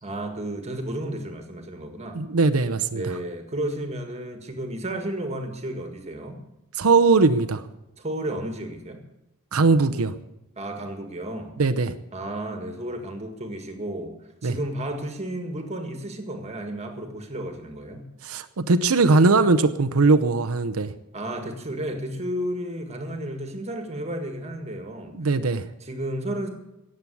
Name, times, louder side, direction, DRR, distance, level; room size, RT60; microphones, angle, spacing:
voice 1, 0.0-2.2 2.9-6.4 8.0-9.0 10.6-11.6 12.1-14.2 14.4-18.1 21.1-25.2 25.8-26.5, right 1 dB, 30° right, 5 dB, 1.8 m, -32 dB
voice 2, 2.1-3.0 6.8-7.6 9.5-10.1 11.6-11.9 14.4-14.6 18.2-20.9 25.1-25.6, right 3 dB, 75° right, 8 dB, 0.8 m, -20 dB
18.0 x 7.7 x 8.4 m, 0.92 s
head